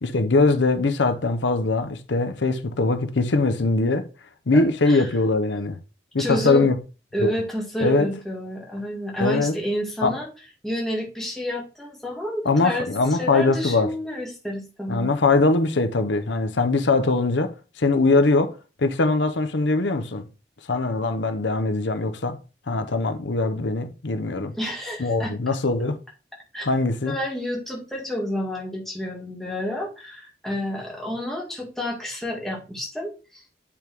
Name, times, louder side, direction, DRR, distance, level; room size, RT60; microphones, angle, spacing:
voice 1, 0.0-4.1 4.5-5.8 6.1-6.8 7.2-7.3 7.8-8.1 9.2-9.5 10.0-10.1 12.4-13.9 14.9-18.5 18.8-20.3 20.7-22.4 22.7-24.5 25.0-26.0 26.6-27.1, left 3 dB, 85° left, 0.8 m, -21 dB
voice 2, 4.5-5.1 6.2-6.7 7.1-10.3 10.6-12.9 13.2-15.1 24.6-25.3 26.5-26.7 27.1-33.4, equal, ahead, 1.8 m, -30 dB
8.7 x 3.5 x 4.6 m
head